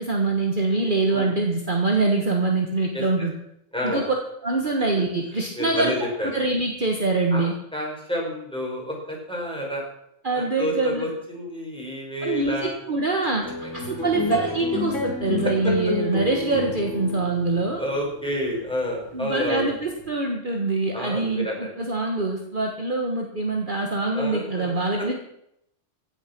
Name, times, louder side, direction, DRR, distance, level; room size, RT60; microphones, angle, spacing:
voice 1, 0.0-3.3 3.8-4.0 4.4-5.9 6.3-7.5 10.2-11.0 12.2-13.4 13.7-17.8 19.1-25.1, right 3 dB, 40° right, 2 dB, 1.6 m, -24 dB
voice 2, 3.7-4.1 4.8-4.9 5.5-6.3 7.3-9.8 10.3-12.7 13.8-13.9 15.6-15.7 17.8-19.7 20.9-21.7 24.1-25.1, left 1 dB, 5° left, -2 dB, 5.2 m, -29 dB
sound 1, 13.4-20.1, left 3 dB, 70° left, 2.7 m, -30 dB
16.0 x 10.0 x 6.0 m, 0.77 s
omnidirectional pair, 1.3 m